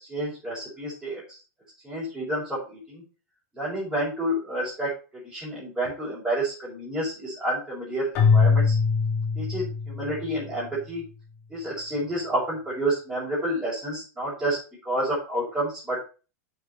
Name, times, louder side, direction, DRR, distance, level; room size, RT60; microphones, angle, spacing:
voice 1, 0.1-1.4 1.8-3.0 3.5-4.9 5.2-8.8 9.4-11.0 11.5-14.6 14.9-16.1, right 1 dB, 10° right, -11 dB, 5.2 m, -29 dB
Keyboard (musical), 8.1-10.4, left 5 dB, 30° left, 3.1 m, -22 dB
7.1 x 6.9 x 5.7 m, 0.34 s
supercardioid pair, 175°, 9 cm